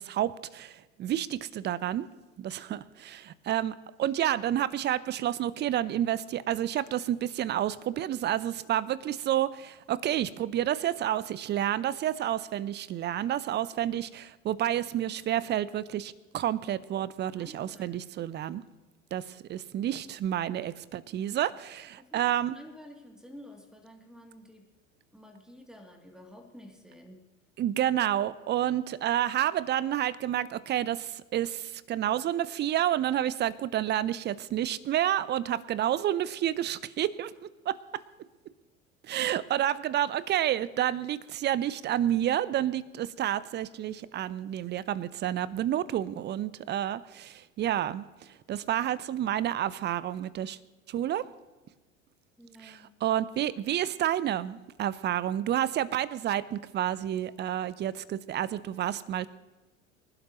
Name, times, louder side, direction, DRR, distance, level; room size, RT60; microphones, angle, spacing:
voice 1, 0.0-2.1 2.4-18.6 19.1-22.6 27.6-37.8 39.0-50.6 50.9-51.3 52.6-59.3, right 11 dB, 25° right, 19 dB, 0.7 m, -30 dB
voice 2, 17.4-18.3 22.0-22.2 22.5-24.7 25.1-27.2 52.4-52.9, equal, ahead, 2 dB, 2.8 m, -50 dB
25.5 x 12.0 x 3.1 m, 1.2 s
figure-of-eight pair, 75°, 39 cm